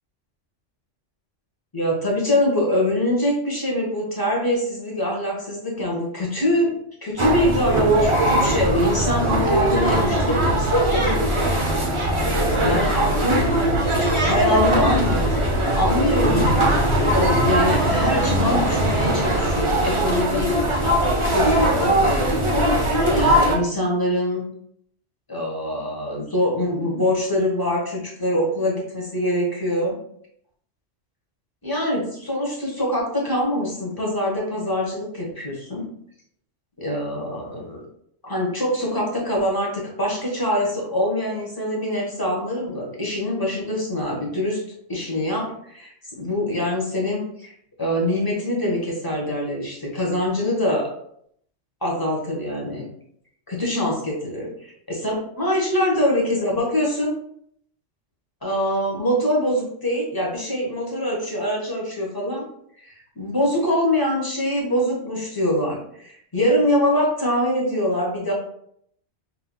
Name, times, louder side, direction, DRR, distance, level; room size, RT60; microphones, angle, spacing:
voice 1, 1.7-13.5 14.2-20.7 21.2-22.3 22.6-24.4 25.3-30.0 31.6-35.9 36.8-37.8 38.2-44.6 44.9-47.5 47.8-50.9 51.8-52.8 53.5-57.1 58.4-62.4 62.8-68.3, left 1 dB, 20° left, -2 dB, 1.0 m, -24 dB
sound 1, 7.2-23.6, right 1 dB, 30° right, 0.7 m, -20 dB
5.6 x 2.8 x 2.2 m, 0.68 s
omnidirectional pair, 1.2 m